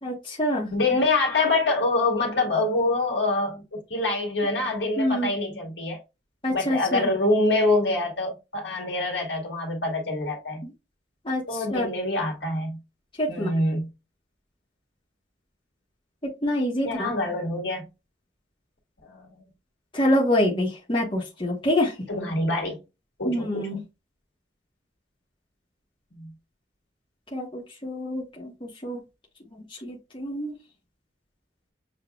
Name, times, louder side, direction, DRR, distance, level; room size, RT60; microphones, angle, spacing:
voice 1, 0.0-0.7 5.0-5.3 6.4-7.1 11.2-11.4 11.7-11.8 13.2-13.5 16.2-17.1 19.9-21.9 23.2-23.8 27.3-29.0 29.8-30.5, left 1 dB, 30° left, 1.2 m, -26 dB
voice 2, 0.7-6.0 6.5-10.7 11.5-12.8 13.3-13.9 16.8-17.8 19.0-19.4 22.1-22.8 23.2-23.6 26.2-26.3, left 2 dB, 75° left, 2.0 m, -25 dB
6.9 x 2.7 x 2.4 m
head